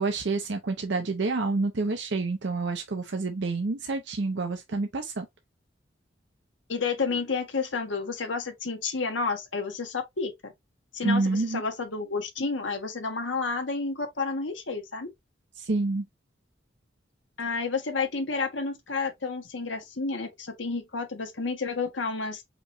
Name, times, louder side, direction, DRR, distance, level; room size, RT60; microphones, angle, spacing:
voice 1, 0.0-5.3 11.0-11.6 15.6-16.0, right 3 dB, 65° right, 0.7 m, -28 dB
voice 2, 6.7-10.5 10.9-15.1 17.4-22.4, left 4 dB, 85° left, 1.3 m, -30 dB
5.1 x 3.0 x 2.6 m
head